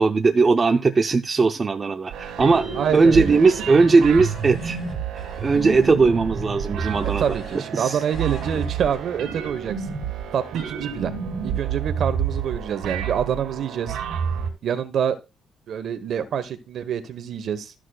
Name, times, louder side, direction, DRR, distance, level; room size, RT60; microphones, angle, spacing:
voice 1, 0.0-2.7 2.9-4.8 5.1-7.4 7.7-8.0, right 4 dB, 35° right, 6 dB, 0.5 m, -18 dB
sound 1, 2.1-14.5, right 7 dB, 85° right, 1.8 m, -29 dB
voice 2, 2.7-3.4 7.2-9.8 10.3-11.1 11.4-14.0 14.6-15.2 15.7-17.7, right 8 dB, 65° right, 10 dB, 1.0 m, -26 dB
sound 2, 3.7-5.9 6.8-7.7 8.0-9.0, left 4 dB, 50° left, 2.3 m, -46 dB
13.0 x 6.1 x 2.3 m, 0.27 s
cardioid pair, 90°, 0 cm